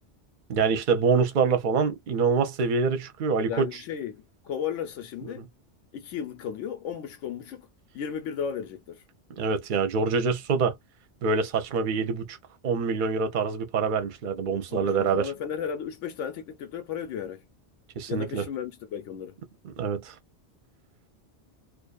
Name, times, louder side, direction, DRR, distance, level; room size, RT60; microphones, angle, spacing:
voice 1, 0.5-3.7 5.4-5.5 9.4-10.7 11.2-12.4 12.6-15.3 18.0-18.5 19.6-20.1, right 5 dB, 50° right, 0.7 m, -25 dB
voice 2, 3.4-5.5 5.9-7.7 7.9-9.0 14.7-17.4 18.1-19.4, left 8 dB, 90° left, 1.0 m, -34 dB
2.5 x 2.3 x 2.2 m
omnidirectional pair, 1.2 m